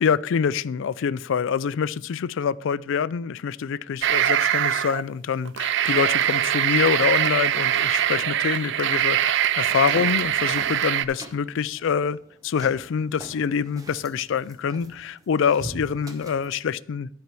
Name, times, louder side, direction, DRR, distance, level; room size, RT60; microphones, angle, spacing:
voice 1, 0.0-12.2 12.4-17.1, left 6 dB, 70° left, 0.4 m, -25 dB
sound 1, 4.0-5.0 5.5-11.1, right 11 dB, 65° right, 0.4 m, -23 dB
sound 2, 9.6-16.6, right 1 dB, 20° right, 1.0 m, -42 dB
10.5 x 4.6 x 6.8 m
head